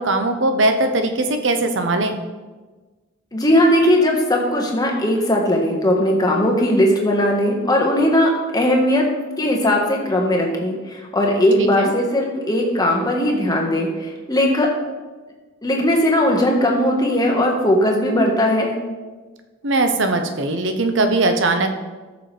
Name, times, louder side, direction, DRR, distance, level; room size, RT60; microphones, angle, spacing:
voice 1, 0.0-2.2 11.6-11.9 19.6-21.8, right 2 dB, 65° right, 6 dB, 0.9 m, -20 dB
voice 2, 3.3-9.1 9.4-14.7 15.6-18.8, left 1 dB, 20° left, 0 dB, 1.4 m, -18 dB
13.0 x 6.9 x 3.4 m, 1.3 s
head